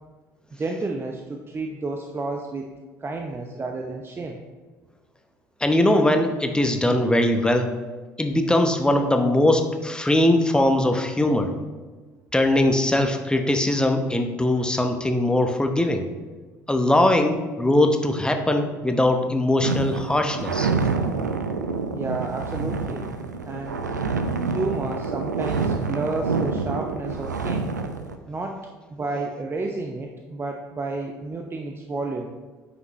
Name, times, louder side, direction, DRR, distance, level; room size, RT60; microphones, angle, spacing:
voice 1, 0.6-2.7 3.0-4.4 21.9-23.1 23.4-23.8 24.5-27.7 28.3-28.6 28.9-32.3, right 3 dB, 25° right, 3 dB, 0.7 m, -31 dB
voice 2, 5.6-7.7 8.2-11.5 12.3-16.1 16.7-20.7, left 1 dB, 10° left, 6 dB, 0.9 m, -21 dB
sound 1, 19.6-28.2, right 4 dB, 85° right, 0.4 m, -27 dB
9.2 x 5.9 x 3.1 m, 1.3 s
figure-of-eight pair, 55°, 9 cm